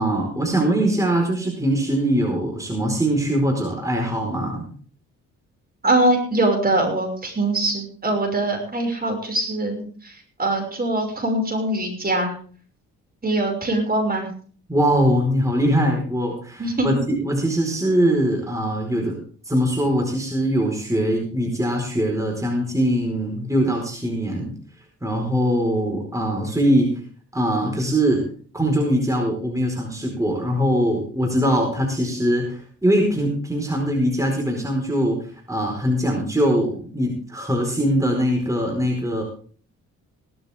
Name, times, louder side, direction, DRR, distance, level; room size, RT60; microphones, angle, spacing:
voice 1, 0.0-4.7 14.7-19.2 19.4-24.5 25.0-27.0 27.3-28.2 28.5-35.2 35.5-39.2, equal, 10° right, 0 dB, 4.6 m, -22 dB
voice 2, 5.8-12.3 13.2-14.3 16.6-16.9, right 2 dB, 30° right, 3 dB, 6.0 m, -22 dB
17.5 x 13.0 x 3.6 m, 0.43 s
cardioid pair, 90°, 30 cm